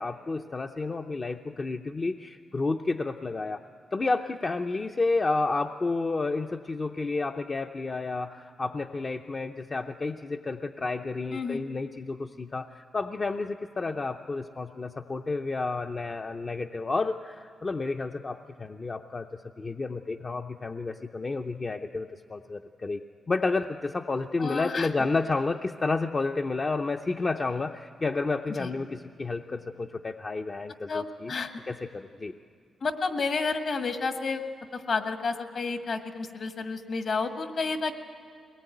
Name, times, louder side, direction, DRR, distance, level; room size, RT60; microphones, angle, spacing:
voice 1, 0.0-3.6 3.9-19.3 19.6-23.0 23.3-31.3 31.7-32.3, left 3 dB, 35° left, 5 dB, 0.6 m, -31 dB
voice 2, 11.3-11.6 24.4-24.9 28.6-28.7 30.9-31.5 32.8-34.4 34.7-37.9, left 4 dB, 60° left, 6 dB, 1.8 m, -30 dB
22.0 x 19.5 x 9.2 m, 2.2 s
cardioid pair, 90°, 0 cm